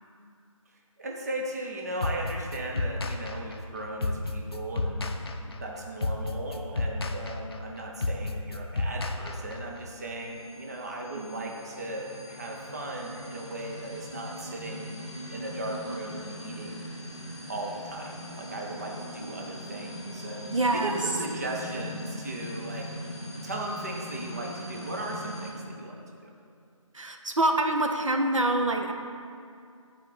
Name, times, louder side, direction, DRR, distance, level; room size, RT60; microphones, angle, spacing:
voice 1, 1.0-14.9 15.3-16.9 17.5-26.3, right 1 dB, 30° right, 0 dB, 0.8 m, -37 dB
sound 1, 2.0-9.8, left 2 dB, 45° left, 0.6 m, -31 dB
sound 2, 9.8-25.5, equal, 15° left, 1.4 m, -40 dB
voice 2, 11.2-11.5 20.5-21.0 26.9-28.9, right 2 dB, 65° right, 4 dB, 0.8 m, -26 dB
8.8 x 5.0 x 6.8 m, 2.4 s
figure-of-eight pair, 160°, 18 cm